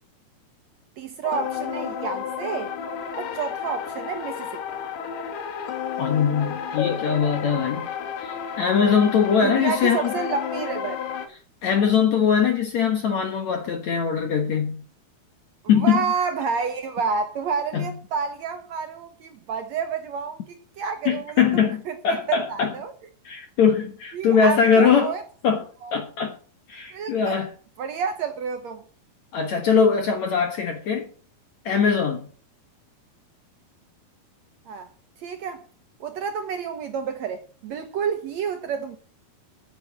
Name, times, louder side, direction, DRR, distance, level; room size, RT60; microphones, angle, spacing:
voice 1, 1.0-2.7 3.2-4.6 9.4-11.0 15.8-20.4 20.8-21.4 21.9-22.9 24.1-25.2 25.8-25.9 26.9-27.4 27.8-28.8 34.7-34.9 35.2-35.6 36.0-39.0, right 6 dB, 75° right, 1.6 m, -29 dB
sound 1, 1.2-11.3, left 8 dB, 80° left, 3.6 m, -31 dB
voice 2, 6.0-7.9 8.2-10.1 11.6-14.8 15.7-16.1 17.7-17.9 21.1-22.7 23.3-25.1 25.4-25.7 25.9-26.4 26.7-27.5 29.3-31.1 31.7-32.3, left 6 dB, 60° left, 2.1 m, -21 dB
9.3 x 9.2 x 7.4 m
omnidirectional pair, 4.6 m